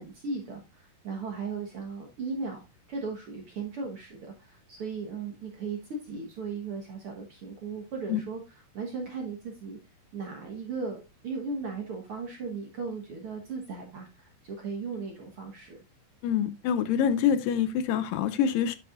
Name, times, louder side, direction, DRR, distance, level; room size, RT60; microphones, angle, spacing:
voice 1, 0.0-5.8 6.0-9.8 10.1-15.8, right 4 dB, 55° right, 1.6 m, -37 dB
voice 2, 16.2-18.8, left 8 dB, 80° left, 2.3 m, -26 dB
9.8 x 6.0 x 2.4 m
omnidirectional pair, 4.0 m